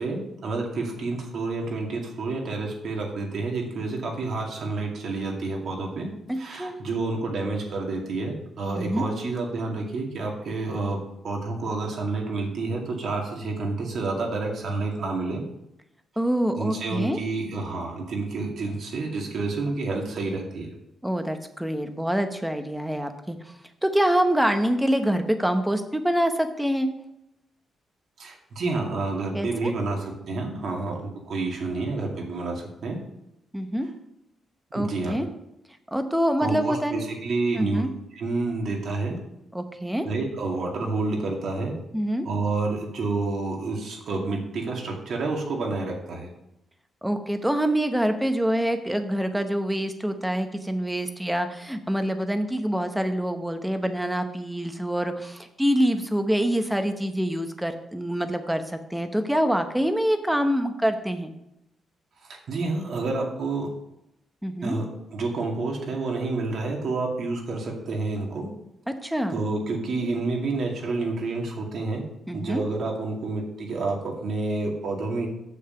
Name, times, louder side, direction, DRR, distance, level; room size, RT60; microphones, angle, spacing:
voice 1, 0.0-6.1 6.4-11.0 11.2-15.4 16.6-20.7 28.2-33.0 34.7-35.2 36.4-37.8 38.1-39.2 40.0-41.8 42.2-46.3 62.2-63.7 64.6-68.5 69.3-72.0 72.3-75.3, right 3 dB, 65° right, 0 dB, 2.3 m, -29 dB
voice 2, 6.3-6.8 8.8-9.0 16.2-17.2 21.0-23.5 23.8-26.9 29.3-29.7 33.5-33.9 34.7-35.3 35.9-37.0 37.6-37.9 39.5-40.1 41.9-42.3 47.0-61.3 64.4-64.8 69.0-69.4 72.3-72.6, equal, 5° right, 7 dB, 0.9 m, -25 dB
7.2 x 6.7 x 5.8 m, 0.84 s
cardioid pair, 110°, 0 cm